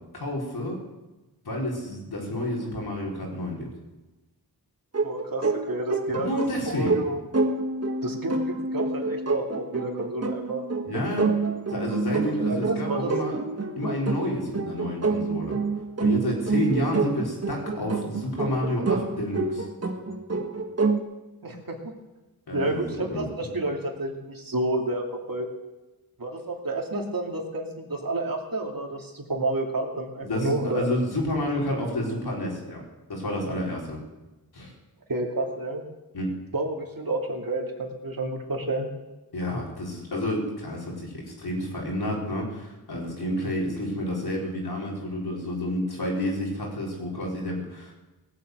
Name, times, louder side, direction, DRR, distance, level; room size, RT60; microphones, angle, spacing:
voice 1, 0.1-0.8 1.4-3.7 6.1-7.0 10.8-11.3 11.7-13.4 13.8-15.6 16.0-19.7 20.3-20.4 22.5-23.2 30.2-32.8 33.1-34.0 34.5-34.7 36.1-36.3 39.3-47.9, left 1 dB, 80° left, -2 dB, 4.5 m, -29 dB
sound 1, 4.9-21.0, right 4 dB, 40° right, 1.5 m, -28 dB
voice 2, 5.0-6.3 6.7-7.2 8.0-10.6 12.2-13.1 21.4-21.8 22.5-25.5 26.2-30.9 35.1-35.8 36.5-38.9, right 2 dB, 65° right, 1 dB, 2.7 m, -30 dB
18.0 x 8.0 x 8.1 m, 1.1 s
cardioid pair, 50°, 37 cm